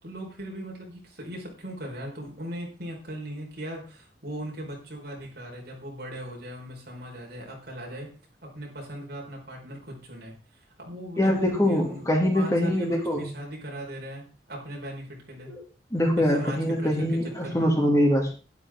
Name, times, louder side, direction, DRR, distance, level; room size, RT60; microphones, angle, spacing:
voice 1, 0.0-8.1 8.4-12.0 12.3-15.5 16.2-17.7, equal, 60° right, -1 dB, 4.9 m, -39 dB
voice 2, 11.2-13.3 15.5-15.6 15.9-18.3, equal, 15° left, 1 dB, 2.6 m, -23 dB
12.0 x 11.5 x 3.7 m, 0.34 s
head